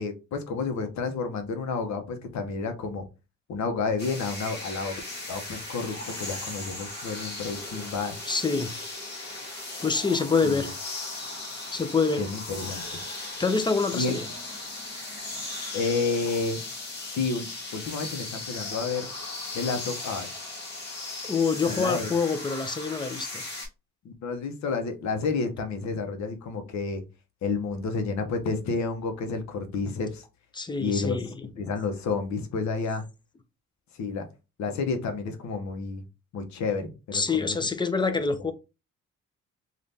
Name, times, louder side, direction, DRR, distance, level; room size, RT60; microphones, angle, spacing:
voice 1, 0.0-3.0 3.5-5.0 5.3-8.2 10.4-10.7 12.2-12.8 13.9-14.2 15.7-16.6 17.0-17.5 17.7-19.1 19.5-20.3 21.7-22.1 24.0-27.0 27.4-30.2 30.8-31.2 31.6-33.0 34.0-34.3 34.6-36.0 36.3-37.6, left 4 dB, 65° left, 0.8 m, -30 dB
sound 1, 4.0-23.7, left 2 dB, 35° left, 1.7 m, -37 dB
voice 2, 8.3-8.8 9.5-10.7 11.7-12.3 13.3-14.3 21.2-23.4 30.5-31.5 37.1-38.5, left 4 dB, 15° left, 0.5 m, -26 dB
3.3 x 2.4 x 2.6 m
cardioid pair, 90°, 30 cm